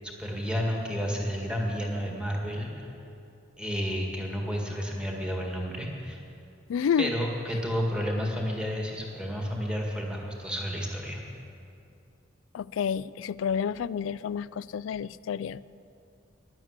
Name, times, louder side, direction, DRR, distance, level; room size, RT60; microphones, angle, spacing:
voice 1, 0.0-2.7 3.6-6.2 7.0-11.2, equal, 5° right, 0 dB, 1.8 m, -31 dB
voice 2, 6.7-7.1 12.5-15.7, left 7 dB, 80° left, 19 dB, 0.3 m, -29 dB
11.0 x 11.0 x 8.1 m, 2.6 s
head